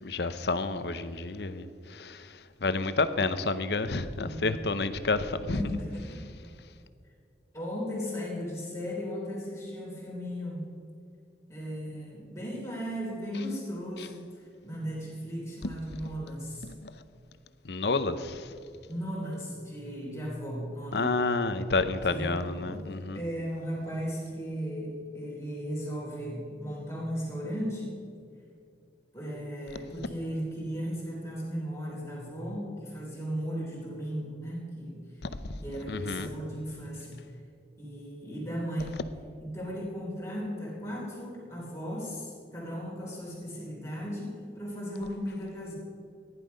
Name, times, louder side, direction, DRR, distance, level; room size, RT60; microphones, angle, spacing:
voice 1, 0.0-1.7 1.9-2.3 2.6-5.6 17.6-18.4 20.9-23.2 35.2-35.3 35.9-36.3, left 3 dB, 75° left, 12 dB, 0.8 m, -29 dB
voice 2, 4.2-4.5 5.5-6.3 7.5-10.7 11.5-16.7 18.9-21.2 22.0-22.8 23.1-27.9 29.1-35.0 35.6-37.3 37.8-39.0 39.4-45.7, equal, 15° left, -5 dB, 3.2 m, -36 dB
14.5 x 11.0 x 5.2 m, 2.4 s
head